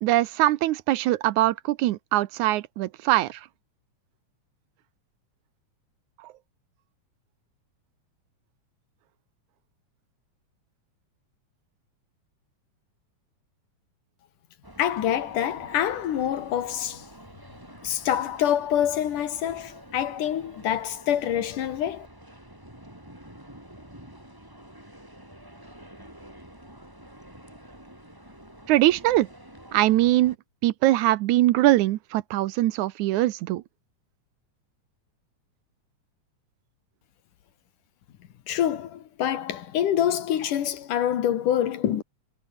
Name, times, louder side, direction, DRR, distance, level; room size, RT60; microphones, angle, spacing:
voice 1, 0.0-3.4 28.7-29.3 29.7-30.4 30.6-33.6, right 16 dB, 75° right, 2.1 m, -22 dB
sound 1, 14.6-30.4, right 1 dB, 5° right, 5.3 m, -48 dB
voice 2, 14.8-17.0 17.8-22.1 38.5-42.0, left 10 dB, 85° left, 3.3 m, -26 dB
omnidirectional pair, 3.6 m